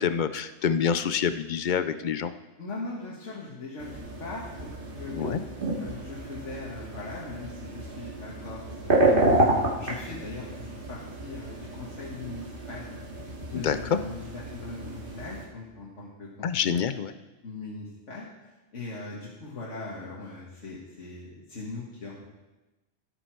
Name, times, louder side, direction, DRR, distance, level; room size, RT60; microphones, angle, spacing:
voice 1, 0.0-2.3 5.1-5.4 13.5-14.0 16.4-17.1, left 7 dB, 55° left, 12 dB, 0.6 m, -27 dB
voice 2, 2.6-3.9 4.2-4.7 5.0-5.4 5.8-13.0 13.5-16.8 17.4-18.3 18.7-22.2, left 3 dB, 90° left, -5 dB, 1.9 m, -40 dB
sound 1, 3.8-15.4, right 2 dB, 45° right, 2.4 m, -30 dB
15.5 x 6.8 x 4.5 m, 1.1 s
omnidirectional pair, 1.2 m